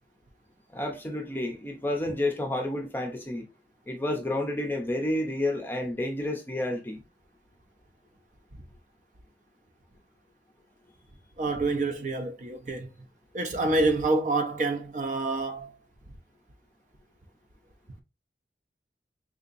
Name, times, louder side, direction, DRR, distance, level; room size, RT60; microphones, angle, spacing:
voice 1, 0.7-3.5 3.9-7.0, left 1 dB, 10° left, 0.6 m, -30 dB
voice 2, 11.4-12.9 13.3-15.7, right 2 dB, 45° right, 0.6 m, -27 dB
3.7 x 2.8 x 2.5 m
head